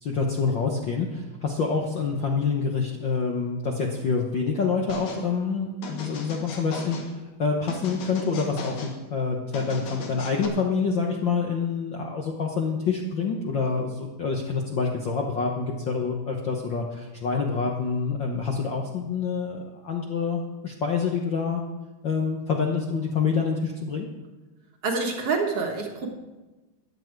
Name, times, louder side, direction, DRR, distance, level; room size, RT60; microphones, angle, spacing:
voice 1, 0.0-21.6 22.0-24.1, left 5 dB, 60° left, 0 dB, 1.3 m, -27 dB
sound 1, 4.9-5.2 5.8-7.1 7.7-9.0 9.5-10.5, left 4 dB, 75° left, 3.1 m, -37 dB
voice 2, 24.8-26.1, right 4 dB, 55° right, 2 dB, 2.0 m, -27 dB
14.5 x 10.5 x 4.7 m, 1.1 s
omnidirectional pair, 3.5 m